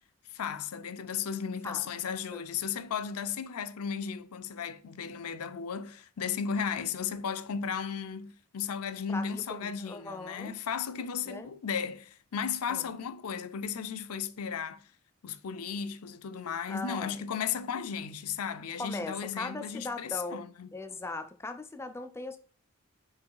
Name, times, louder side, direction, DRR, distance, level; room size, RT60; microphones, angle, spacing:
voice 1, 0.3-14.8 15.2-20.7, left 7 dB, 85° left, 0.5 m, -35 dB
voice 2, 9.1-10.6 11.3-11.5 12.7-12.9 16.7-17.3 18.8-20.5 20.7-22.4, left 3 dB, 10° left, 0.4 m, -39 dB
4.7 x 4.6 x 4.7 m
head